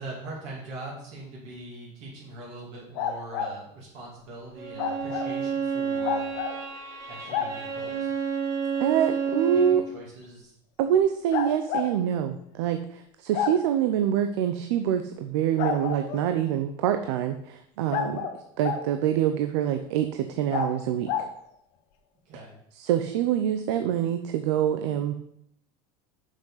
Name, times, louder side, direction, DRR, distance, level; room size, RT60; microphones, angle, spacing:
voice 1, 0.0-6.2 7.1-8.1 9.5-10.5 22.2-22.6, right 2 dB, 50° right, -4 dB, 2.5 m, -42 dB
sound 1, 2.9-3.5 4.8-5.3 6.0-6.6 7.3-7.5 9.3-9.4 11.3-11.9 13.3-13.5 15.6-16.3 17.9-18.8 20.5-20.7 21.1-21.3, left 7 dB, 55° left, 1.0 m, -29 dB
Bowed string instrument, 4.6-9.9, right 6 dB, 20° right, 1.0 m, -30 dB
voice 2, 8.8-9.8 10.8-18.3 18.6-21.1 22.8-25.1, right 10 dB, 90° right, 8 dB, 0.6 m, -25 dB
6.5 x 6.3 x 5.6 m, 0.73 s
cardioid pair, 170°, 14 cm